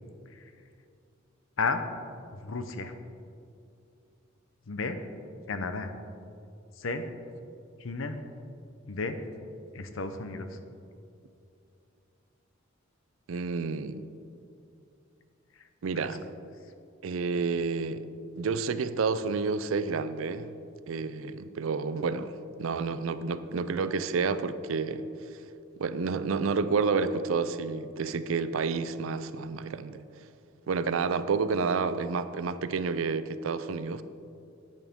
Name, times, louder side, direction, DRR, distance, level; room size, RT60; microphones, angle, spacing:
voice 1, 2.3-2.9 4.7-5.0 5.5-5.9 6.8-7.1 7.8-8.2 8.9-9.2 9.7-10.6 15.6-15.7 15.9-16.1, left 4 dB, 70° left, 9 dB, 0.7 m, -33 dB
voice 2, 13.3-14.0 15.8-16.2 17.0-18.1 18.4-20.5 20.9-25.1 25.8-30.0 30.7-34.0, right 4 dB, 70° right, 13 dB, 0.4 m, -30 dB
10.5 x 8.2 x 3.6 m, 2.6 s
head